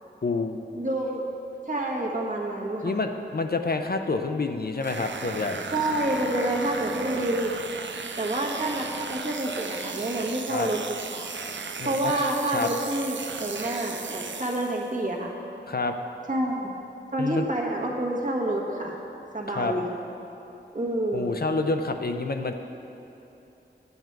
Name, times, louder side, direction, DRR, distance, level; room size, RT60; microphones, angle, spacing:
voice 1, 0.2-0.6 2.8-5.6 10.5-10.7 11.8-12.1 12.5-12.7 15.7-16.0 17.2-17.5 19.5-19.7 21.1-22.5, left 3 dB, 55° left, 6 dB, 0.5 m, -28 dB
voice 2, 0.7-1.2 1.7-3.0 5.7-7.5 8.2-10.8 11.1-11.3 11.8-15.3 16.3-16.7 17.1-19.0 19.3-19.9 20.7-21.4, right 1 dB, 45° right, -2 dB, 1.3 m, -28 dB
sound 1, 4.8-15.0, right 4 dB, 80° right, 0.5 m, -36 dB
9.0 x 8.0 x 4.6 m, 2.9 s
wide cardioid pair, 45°, 19 cm